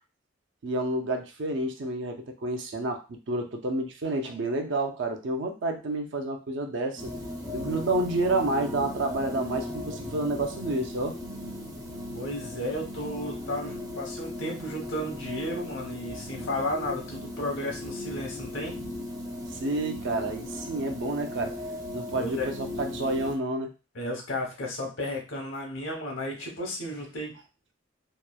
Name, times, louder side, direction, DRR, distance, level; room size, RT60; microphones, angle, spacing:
voice 1, 0.6-7.1 7.5-11.2 19.5-21.6 21.9-23.7, right 2 dB, 70° right, 5 dB, 0.5 m, -29 dB
sound 1, 7.0-23.3, left 1 dB, 20° right, 0.5 m, -37 dB
voice 2, 12.1-18.8 22.2-22.5 23.9-27.3, left 1 dB, 80° left, 1 dB, 0.9 m, -33 dB
3.0 x 2.1 x 2.3 m, 0.29 s
head